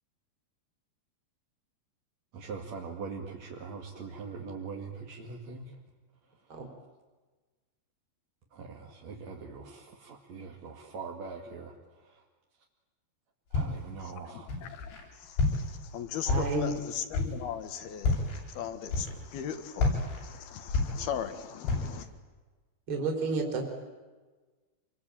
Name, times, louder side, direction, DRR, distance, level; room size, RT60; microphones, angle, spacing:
voice 1, 2.3-5.7 8.5-11.7 12.0-12.2 13.5-14.5, right 5 dB, 45° right, 3.0 m, -42 dB
Walk footsteps, 13.5-14.0 14.5-15.0 15.4-15.9 16.3-16.8 17.1-17.5 18.0-18.4 18.9-19.4 19.8-21.3 21.7-22.0, left 3 dB, 90° left, 9.8 m, -29 dB
voice 2, 14.0-22.1, left 9 dB, 65° left, 3.5 m, -39 dB
voice 3, 16.3-16.7 22.9-23.6, right 3 dB, 30° right, 4.3 m, -30 dB
27.5 x 23.0 x 9.2 m
omnidirectional pair, 5.1 m